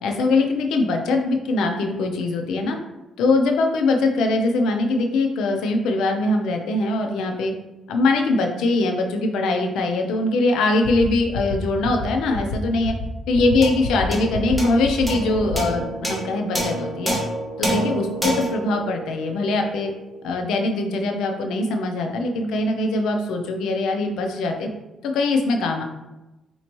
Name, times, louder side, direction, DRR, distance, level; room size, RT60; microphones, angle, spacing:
voice 1, 0.0-2.8 3.2-7.5 7.9-12.9 13.3-17.2 17.6-19.9 20.2-24.7 25.0-25.8, left 2 dB, 85° left, 3 dB, 0.5 m, -22 dB
sound 1, 10.8-11.1 11.3-11.6 11.8-12.1 12.3-12.6 12.8-13.1 13.3-13.6 13.8-14.1 14.3-14.6 14.8-15.1 15.3-15.6, left 3 dB, 65° left, 1.2 m, -29 dB
sound 2, 13.6-20.2, right 1 dB, ahead, 1.0 m, -28 dB
4.3 x 2.7 x 3.0 m, 1.0 s
cardioid pair, 90°, 0 cm